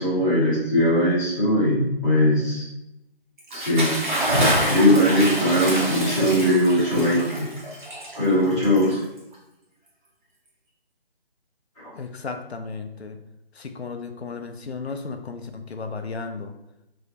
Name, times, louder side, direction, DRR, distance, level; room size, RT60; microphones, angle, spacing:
voice 1, 0.0-2.6 3.5-3.9 4.7-7.5 8.2-9.0 11.8-11.9, left 1 dB, ahead, -36 dB, 0.6 m, -20 dB
Bathtub (filling or washing) / Splash splatter, 3.4-9.3, equal, 50° right, 1.2 m, -26 dB
voice 2, 11.9-13.2 13.5-16.5, left 4 dB, 85° left, 6 dB, 0.5 m, -34 dB
3.4 x 2.6 x 2.8 m, 0.90 s
figure-of-eight pair, 155°, 31 cm